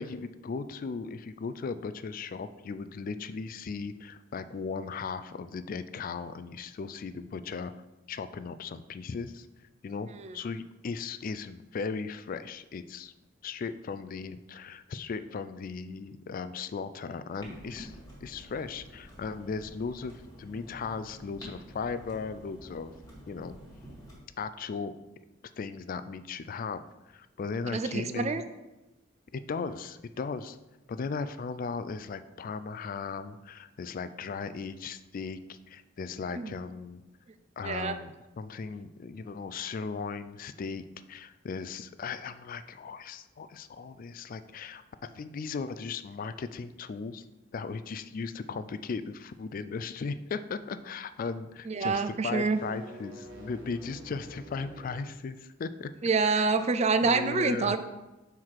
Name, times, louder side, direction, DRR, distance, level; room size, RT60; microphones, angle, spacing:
voice 1, 0.0-7.7 8.1-9.5 9.8-13.1 13.4-17.9 18.2-22.9 23.3-23.6 24.4-25.0 25.6-28.4 29.3-30.6 30.9-37.0 37.6-47.2 47.5-55.9 56.2-56.5 57.0-57.8, left 5 dB, 45° left, 12 dB, 0.3 m, -37 dB
Clock, 17.4-24.2, equal, 15° left, 1.7 m, -49 dB
voice 2, 27.7-28.4 36.4-36.5 37.6-37.9 51.7-52.6 56.0-57.8, right 4 dB, 35° right, 10 dB, 0.4 m, -27 dB
sound 1, 52.3-55.1, right 1 dB, 65° right, 1.2 m, -48 dB
5.8 x 4.5 x 4.7 m, 1.0 s
head